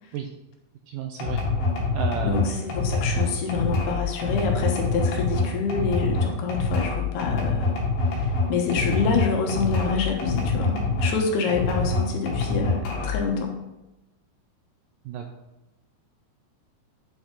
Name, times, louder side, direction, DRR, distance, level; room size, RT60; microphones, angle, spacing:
voice 1, 0.9-1.4 1.9-2.5 11.5-11.6 15.1-15.2, right 8 dB, 85° right, 4 dB, 1.9 m, -33 dB
sound 1, 1.2-11.2 11.5-13.3, left 3 dB, 65° left, 3.5 m, -25 dB
voice 2, 2.2-7.8 8.1-13.5, left 5 dB, 85° left, 2 dB, 3.2 m, -27 dB
8.5 x 6.5 x 3.9 m, 0.98 s
omnidirectional pair, 4.5 m